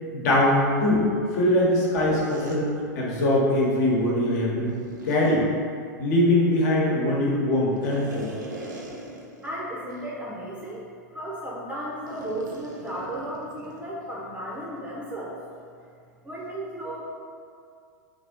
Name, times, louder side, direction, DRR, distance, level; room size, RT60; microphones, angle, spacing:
voice 1, 0.1-1.0 1.3-4.7 5.0-5.5 6.0-8.3, left 1 dB, 65° left, -4 dB, 1.1 m, -22 dB
sound 1, 2.2-2.6 4.6-5.3 7.8-9.5 9.9-10.0 10.6-10.8 12.1-13.9, right 2 dB, 85° right, 0.7 m, -40 dB
voice 2, 9.4-10.8 11.1-15.4 16.2-17.0, right 1 dB, 10° right, -5 dB, 0.6 m, -34 dB
3.5 x 2.6 x 3.8 m, 2.2 s
hypercardioid pair, 110°, 10 cm